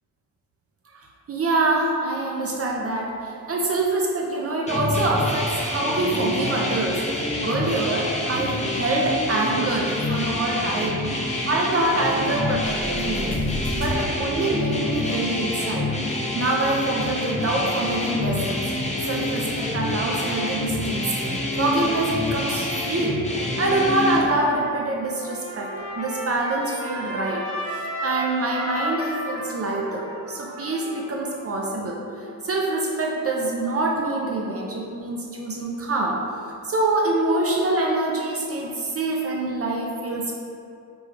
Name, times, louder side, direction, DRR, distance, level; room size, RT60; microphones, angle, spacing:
voice 1, 0.9-7.0 7.4-11.0 11.5-13.4 13.7-15.9 16.3-18.6 19.0-21.1 21.6-23.2 23.6-36.2 36.6-40.3, right 2 dB, 40° right, -2 dB, 0.5 m, -25 dB
sound 1, 4.7-24.2, left 1 dB, 20° left, 0.6 m, -27 dB
sound 2, 6.0-13.9, left 1 dB, 70° left, 0.8 m, -36 dB
Trumpet, 25.0-31.6, equal, 65° right, 0.9 m, -33 dB
5.3 x 2.2 x 3.2 m, 2.5 s
cardioid pair, 65°, 35 cm